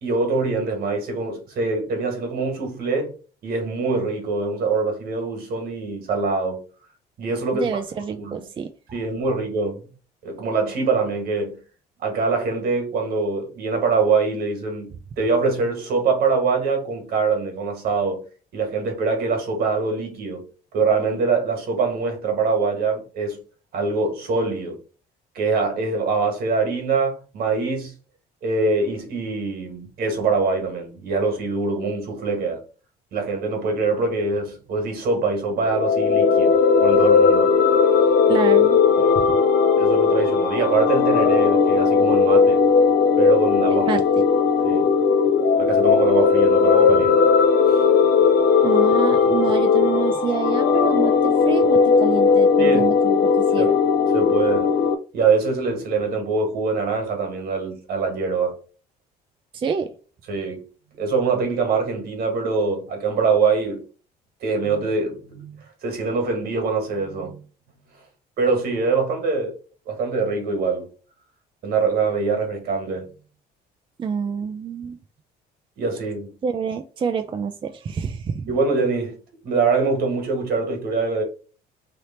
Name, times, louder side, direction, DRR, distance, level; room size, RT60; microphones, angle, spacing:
voice 1, 0.0-3.1 3.4-6.6 7.2-7.7 8.2-8.4 8.9-9.8 10.2-11.6 12.0-18.2 18.5-20.4 20.7-23.4 23.7-24.8 25.4-27.9 28.4-32.6 33.1-37.5 39.0-39.2 39.8-42.6 43.2-44.0 44.6-44.9 45.6-47.3 47.7-47.9 52.6-52.9 53.6-53.7 54.1-54.7 55.1-58.6 60.3-60.6 61.0-63.8 64.4-67.4 68.4-69.5 69.9-70.9 71.6-73.1 75.8-76.3 78.5-79.2 79.4-81.2, right 4 dB, 65° right, 1.7 m, -24 dB
voice 2, 7.5-8.7 38.3-38.8 43.7-44.0 48.6-53.7 59.5-59.9 74.0-75.0 76.4-78.5, right 6 dB, 30° right, 0.4 m, -27 dB
sound 1, 35.6-54.9, left 5 dB, 65° left, 0.5 m, -17 dB
3.3 x 2.8 x 4.2 m
cardioid pair, 110°, 17 cm